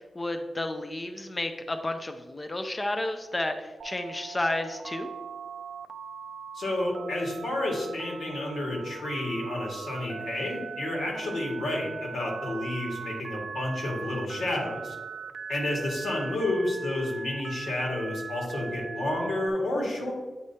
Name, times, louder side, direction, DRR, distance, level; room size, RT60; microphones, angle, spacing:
voice 1, 0.0-5.1, left 1 dB, 20° left, 6 dB, 0.4 m, -32 dB
Telephone, 3.8-19.5, right 6 dB, 80° right, 0.4 m, -40 dB
voice 2, 6.5-15.0 15.5-20.1, left 1 dB, 90° left, -2 dB, 1.9 m, -30 dB
8.8 x 4.8 x 2.8 m, 1.3 s
wide cardioid pair, 155°, 0 cm